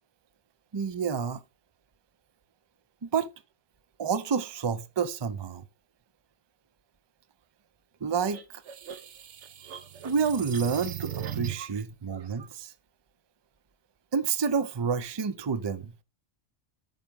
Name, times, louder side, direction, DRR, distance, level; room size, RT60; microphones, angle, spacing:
voice 1, 0.7-1.4 3.0-3.3 4.0-5.6 8.0-8.4 10.0-12.7 14.1-15.9, right 6 dB, 30° right, 0.5 m, -29 dB
sound 1, 8.3-11.8, right 10 dB, 65° right, 1.1 m, -38 dB
9.2 x 3.6 x 7.0 m
omnidirectional pair, 1.3 m